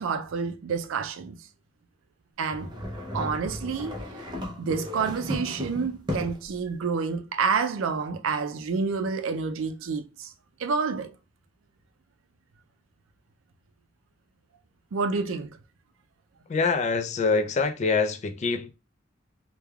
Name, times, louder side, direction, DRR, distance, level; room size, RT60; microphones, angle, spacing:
voice 1, 0.0-1.4 2.4-2.7 3.1-4.0 4.6-10.3 10.6-11.1 14.9-15.6, right 5 dB, 85° right, 0.4 m, -28 dB
sound 1, 2.5-6.5, left 1 dB, 25° right, 0.5 m, -35 dB
voice 2, 16.5-18.7, left 4 dB, 35° left, 0.3 m, -25 dB
3.2 x 2.2 x 2.3 m
head